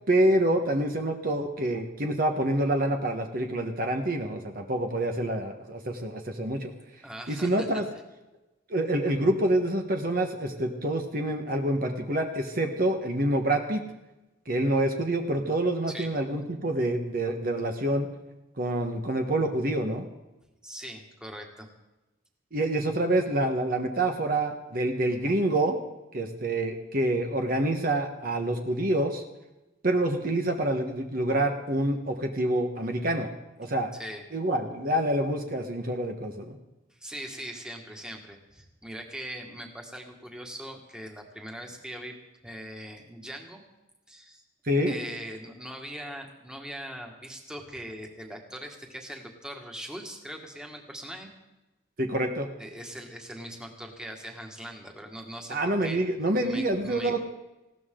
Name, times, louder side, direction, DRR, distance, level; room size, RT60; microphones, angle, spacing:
voice 1, 0.1-6.7 7.3-7.8 8.7-13.8 14.5-18.1 18.6-20.0 22.5-25.8 26.1-29.2 29.8-33.3 33.6-33.9 34.3-36.6 44.6-44.9 52.0-52.5 55.5-57.2, right 1 dB, 50° right, 4 dB, 1.3 m, -27 dB
voice 2, 7.0-8.0 15.9-16.1 20.6-21.7 33.9-34.2 36.9-42.1 42.4-43.6 44.1-44.4 44.9-51.3 52.6-56.0 56.4-57.2, right 1 dB, 5° right, 2 dB, 1.9 m, -41 dB
19.5 x 16.0 x 3.8 m, 1.0 s
head